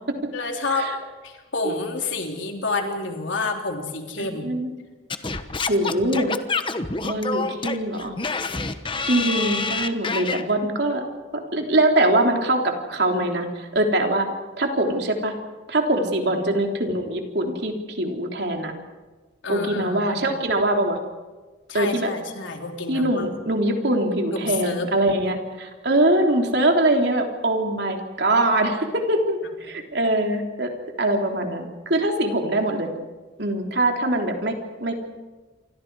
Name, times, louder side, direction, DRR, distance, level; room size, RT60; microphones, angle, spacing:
voice 1, 0.3-0.9 1.2-4.4 19.4-20.2 21.7-23.3 24.3-24.9, left 3 dB, 80° left, 2 dB, 3.9 m, -29 dB
voice 2, 4.2-4.7 5.7-6.3 7.0-8.1 9.1-11.0 11.3-14.3 14.6-15.3 15.7-18.7 19.5-21.0 21.7-22.1 22.9-30.7 31.0-32.9 33.4-34.9, right 1 dB, 60° right, 2 dB, 3.5 m, -23 dB
Singing / Scratching (performance technique), 5.1-10.4, left 4 dB, 25° left, 1.1 m, -27 dB
28.5 x 25.5 x 4.9 m, 1.3 s
head